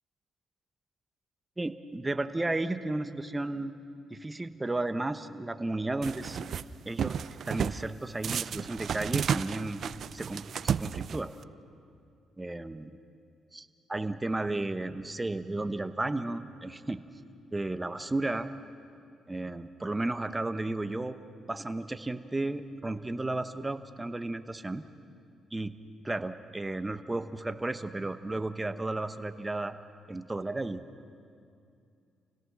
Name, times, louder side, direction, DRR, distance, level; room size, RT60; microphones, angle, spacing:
voice 1, 1.6-3.8 4.1-6.4 6.9-7.2 7.5-9.8 10.1-11.3 12.4-12.9 13.5-17.0 17.5-18.5 19.3-21.2 21.5-24.9 25.5-25.8 26.0-29.7 30.1-30.8, right 2 dB, 15° right, 10 dB, 0.9 m, -33 dB
sound 1, 6.0-6.6 7.0-7.8 8.2-11.4, right 8 dB, 60° right, 0.4 m, -32 dB
28.5 x 17.5 x 6.2 m, 2.5 s
cardioid pair, 90°, 0 cm